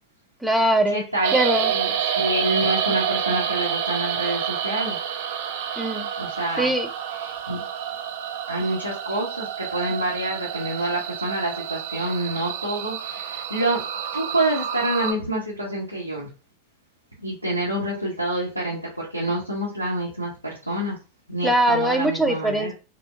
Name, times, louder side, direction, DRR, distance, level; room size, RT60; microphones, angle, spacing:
voice 1, 0.4-1.0 1.3-1.7 5.8-6.1 6.6-6.9 21.4-22.7, right 1 dB, ahead, 5 dB, 0.5 m, -21 dB
voice 2, 0.9-1.9 2.1-5.0 6.2-6.7 7.2-7.6 8.5-13.8 14.1-16.3 17.2-21.0 21.3-22.7, right 1 dB, 90° left, -5 dB, 0.8 m, -27 dB
sound 1, 1.2-15.1, right 8 dB, 55° right, 0.4 m, -28 dB
4.2 x 2.2 x 2.5 m, 0.31 s
figure-of-eight pair, 90°, 0 cm